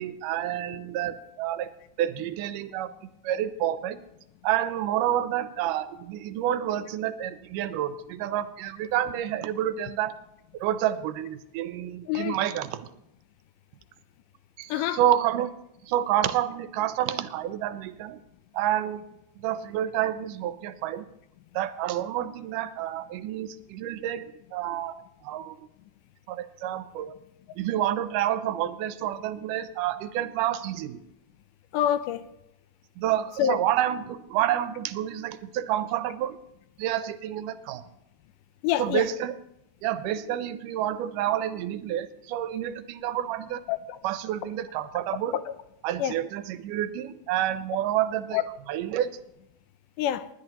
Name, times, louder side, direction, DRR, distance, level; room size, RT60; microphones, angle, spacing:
voice 1, 0.0-1.7 2.0-2.9 3.2-4.0 4.4-10.1 10.6-12.8 14.6-15.5 15.9-18.2 18.5-19.0 19.4-21.0 21.6-24.9 25.2-25.6 26.3-27.1 27.6-31.0 33.0-36.4 36.8-37.8 38.8-39.3 39.8-43.6 44.0-45.4 45.8-48.4 48.7-49.2, right 11 dB, 80° right, 2.2 m, -29 dB
voice 2, 12.1-12.4 14.7-15.0 31.7-32.3 33.4-33.6 38.6-39.1 43.7-44.0 45.3-45.5 46.0-46.1 48.3-48.4 50.0-50.3, left 11 dB, 80° left, 2.1 m, -26 dB
19.5 x 10.5 x 2.9 m
omnidirectional pair, 3.8 m